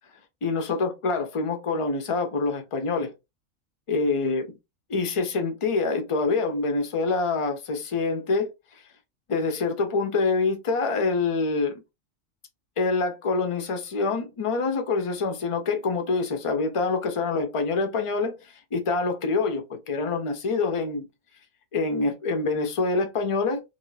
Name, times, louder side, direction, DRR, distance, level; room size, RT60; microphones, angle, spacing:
voice 1, 0.4-3.1 3.9-4.5 4.9-8.5 9.3-11.7 12.8-18.4 18.7-21.1 21.7-23.6, left 3 dB, 40° left, 0.5 m, -26 dB
2.7 x 2.6 x 3.1 m
omnidirectional pair, 1.4 m